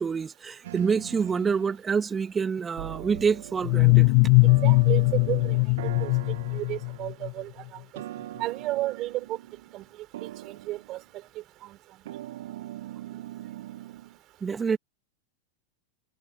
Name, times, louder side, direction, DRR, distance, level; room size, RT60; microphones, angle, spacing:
voice 1, 0.0-4.3 14.4-14.8, right 6 dB, 15° right, 2.8 m, -27 dB
sound 1, 0.6-1.8 2.8-4.1 4.4-7.3 7.9-9.9 10.1-11.0 12.0-14.2, right 14 dB, 55° right, 2.2 m, -41 dB
sound 2, 3.6-7.3, left 40 dB or more, 45° left, 0.7 m, -21 dB
voice 2, 4.4-6.1 6.5-7.5 8.4-9.4 9.7-9.9 10.2-11.0 11.6-11.8, right 16 dB, 35° right, 6.0 m, -33 dB
figure-of-eight pair, 90°, 0 cm